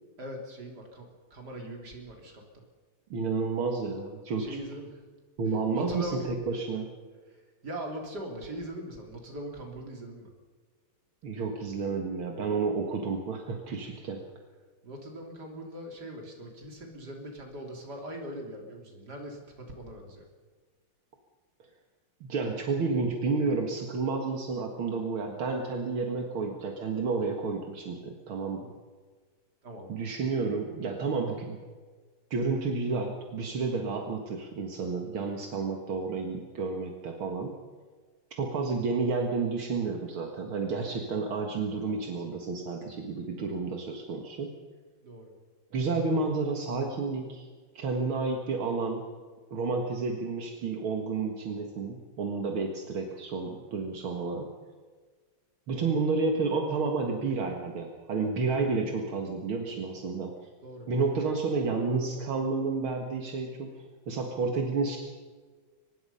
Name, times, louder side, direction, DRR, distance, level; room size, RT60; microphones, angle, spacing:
voice 1, 0.2-2.4 4.4-5.0 5.7-6.3 7.6-10.3 14.8-20.3 29.6-29.9 45.0-45.3 60.6-61.4, right 1 dB, 50° right, 2 dB, 4.1 m, -41 dB
voice 2, 3.1-4.6 5.4-6.9 11.2-14.2 22.2-28.7 29.9-31.6 32.3-37.5 38.4-44.5 45.7-47.5 47.8-49.0 49.5-54.5 55.7-60.3 60.9-65.0, right 4 dB, 70° right, 2 dB, 2.6 m, -30 dB
24.0 x 20.5 x 5.6 m, 1.5 s
omnidirectional pair, 2.4 m